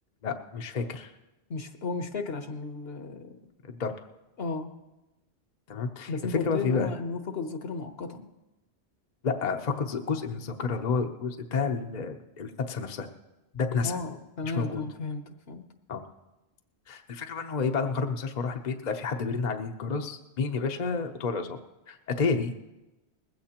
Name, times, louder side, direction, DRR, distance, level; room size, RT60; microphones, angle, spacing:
voice 1, 0.2-1.1 3.6-4.1 5.7-6.9 9.2-13.1 13.5-14.0 14.4-14.8 15.9-16.0 16.9-21.6 21.9-22.7, left 4 dB, 45° left, 4 dB, 0.8 m, -30 dB
voice 2, 1.5-3.4 4.4-4.7 6.1-8.3 13.8-15.6, left 4 dB, 65° left, 7 dB, 1.2 m, -34 dB
20.0 x 15.5 x 2.9 m, 1.0 s
omnidirectional pair, 1.1 m